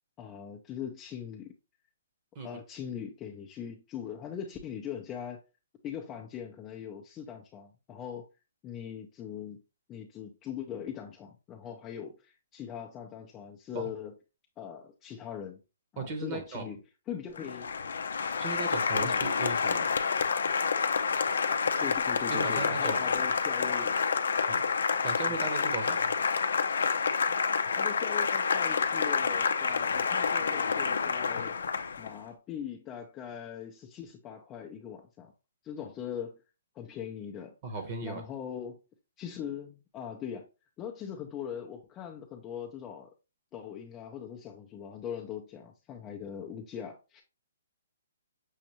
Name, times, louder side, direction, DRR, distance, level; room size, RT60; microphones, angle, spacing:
voice 1, 0.2-1.5 2.4-5.4 5.8-8.3 8.6-9.6 9.9-14.1 14.6-15.6 15.9-16.8 17.1-17.7 19.0-19.2 21.8-23.9 24.5-24.6 27.7-31.6 32.0-35.3 35.6-36.4 36.8-37.5 38.0-38.8 39.2-40.5 40.8-43.1 43.5-47.2, left 8 dB, 20° left, 0.5 m, -41 dB
voice 2, 16.0-16.8 18.4-19.9 22.3-23.1 24.5-24.6 25.0-26.1 37.6-38.2, right 3 dB, 35° right, 0.9 m, -37 dB
Applause, 17.4-32.2, left 5 dB, 75° left, 0.5 m, -28 dB
6.3 x 2.5 x 2.9 m
hypercardioid pair, 155°, 0 cm